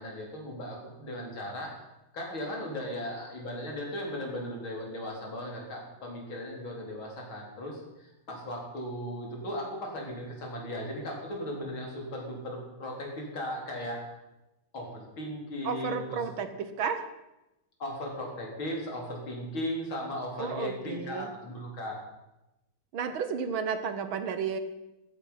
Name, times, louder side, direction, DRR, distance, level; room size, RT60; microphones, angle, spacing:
voice 1, 0.0-1.7 2.1-14.0 14.7-16.2 17.8-22.0, left 1 dB, 85° left, -1 dB, 4.9 m, -37 dB
voice 2, 15.6-17.1 20.4-21.3 22.9-24.6, right 6 dB, 85° right, 10 dB, 2.1 m, -32 dB
15.0 x 14.5 x 5.9 m, 0.96 s
omnidirectional pair, 2.2 m